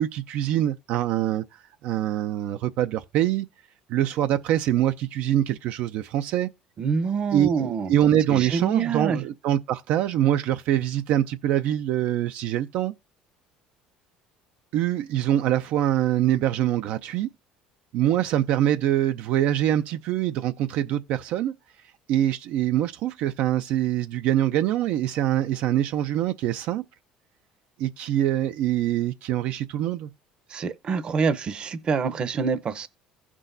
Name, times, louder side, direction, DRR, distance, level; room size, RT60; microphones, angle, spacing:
voice 1, 0.0-3.5 3.9-6.5 7.3-12.9 14.7-17.3 17.9-21.5 22.1-26.8 27.8-30.1, right 12 dB, 65° right, 0.5 m, -24 dB
voice 2, 6.8-7.9 8.3-9.2 30.5-32.9, right 5 dB, 30° right, 0.7 m, -26 dB
16.0 x 6.1 x 2.6 m
cardioid pair, 140°, 3 cm